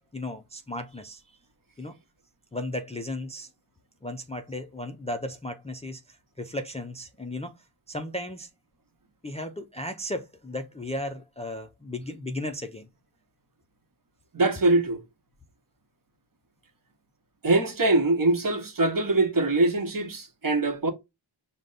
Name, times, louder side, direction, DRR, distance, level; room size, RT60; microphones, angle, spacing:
voice 1, 0.1-1.2 1.8-1.9 2.5-3.5 4.0-7.5 7.9-8.5 9.2-12.9, left 1 dB, 15° left, 0.4 m, -35 dB
voice 2, 14.3-15.0 17.4-20.9, right 2 dB, 40° right, 1.1 m, -23 dB
5.1 x 2.2 x 3.8 m
cardioid pair, 55°, 50 cm